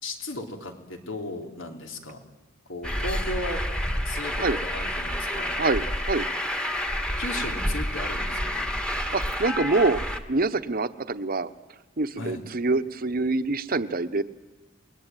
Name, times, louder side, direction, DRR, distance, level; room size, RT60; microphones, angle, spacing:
voice 1, 0.0-2.2 2.7-3.7 4.1-5.6 7.2-8.6 12.2-12.4, left 2 dB, 75° left, 4 dB, 3.6 m, -36 dB
Truck, 2.8-10.2, equal, 5° left, 1.6 m, -29 dB
voice 2, 5.6-6.3 8.9-10.0 10.3-11.5 12.0-14.2, right 3 dB, 50° right, 11 dB, 1.1 m, -25 dB
29.0 x 21.5 x 9.2 m, 1.2 s
head